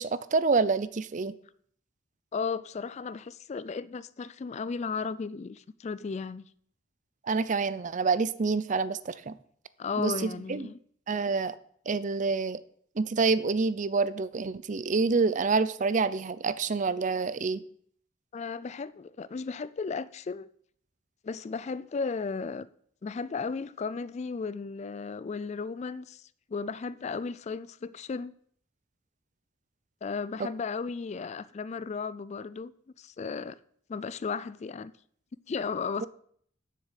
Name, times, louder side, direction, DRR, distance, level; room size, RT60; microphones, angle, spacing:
voice 1, 0.0-1.3 7.3-9.4 10.0-10.7 11.1-11.6 11.9-12.6 13.0-17.6 30.4-30.5, right 4 dB, 40° right, 0.5 m, -27 dB
voice 2, 2.3-6.4 9.8-10.8 18.3-20.5 21.2-22.7 23.0-26.2 26.5-28.3 30.0-32.7 33.0-33.6 33.9-34.9 35.5-36.1, left 5 dB, 35° left, 0.3 m, -35 dB
7.5 x 6.6 x 8.1 m
head